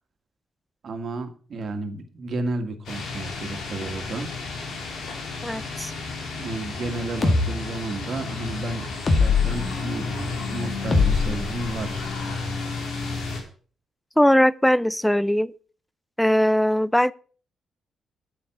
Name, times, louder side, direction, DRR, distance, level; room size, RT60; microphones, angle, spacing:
voice 1, 0.8-4.3 6.3-10.1 10.5-12.1, right 3 dB, 55° right, 1.9 m, -32 dB
sound 1, 2.9-13.4, left 3 dB, 80° left, 3.3 m, -32 dB
voice 2, 5.4-5.9 14.2-15.5 16.2-17.1, equal, 5° left, 0.4 m, -20 dB
sound 2, 7.2-7.5 9.1-9.6 10.9-12.1, left 4 dB, 40° left, 2.0 m, -21 dB
8.7 x 7.9 x 6.0 m
cardioid pair, 80°, 0 cm